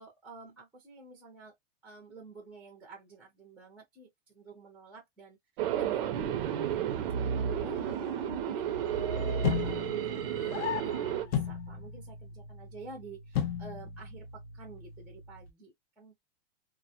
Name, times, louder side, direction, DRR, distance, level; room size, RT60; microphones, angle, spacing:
voice 1, 0.0-1.5 1.8-5.4 5.7-6.8 7.3-16.2, right 4 dB, 5° right, 0.6 m, -50 dB
sound 1, 5.6-11.3, right 9 dB, 55° right, 0.6 m, -32 dB
sound 2, 6.7-11.7, left 9 dB, 90° left, 0.5 m, -43 dB
sound 3, 9.4-15.5, left 8 dB, 45° left, 0.6 m, -37 dB
2.2 x 2.1 x 2.7 m
supercardioid pair, 150°, 34 cm